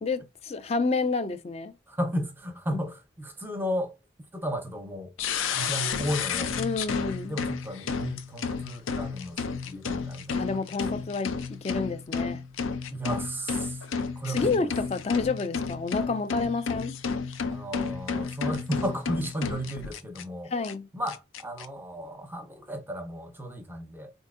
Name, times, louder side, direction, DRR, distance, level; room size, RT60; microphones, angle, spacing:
voice 1, 0.0-1.7 2.7-2.8 6.6-7.4 9.7-9.8 10.3-12.4 14.3-17.0 20.5-20.9, left 4 dB, 30° left, 0.3 m, -29 dB
voice 2, 1.9-4.0 4.3-5.1 5.5-6.5 7.2-11.0 12.9-13.9 14.2-14.7 17.5-20.5 20.9-24.1, equal, 10° right, 0.6 m, -34 dB
sound 1, 5.2-20.2 20.6-20.7 21.1-21.7, left 5 dB, 90° left, 0.5 m, -32 dB
4.4 x 2.7 x 2.4 m
head